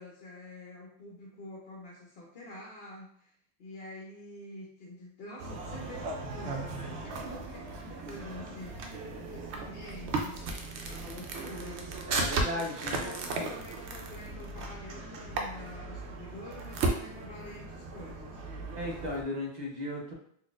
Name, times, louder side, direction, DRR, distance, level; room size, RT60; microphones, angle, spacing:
voice 1, 0.0-3.3 3.6-8.9 9.3-10.4 10.8-11.9 12.5-18.4, left 1 dB, 65° left, -3 dB, 0.9 m, -47 dB
sound 1, 5.4-19.2, right 3 dB, 80° right, 0.9 m, -36 dB
voice 2, 12.1-13.1 13.4-13.5 18.7-20.1, left 1 dB, 45° right, -1 dB, 0.8 m, -36 dB
3.9 x 2.5 x 2.4 m, 0.67 s
omnidirectional pair, 1.1 m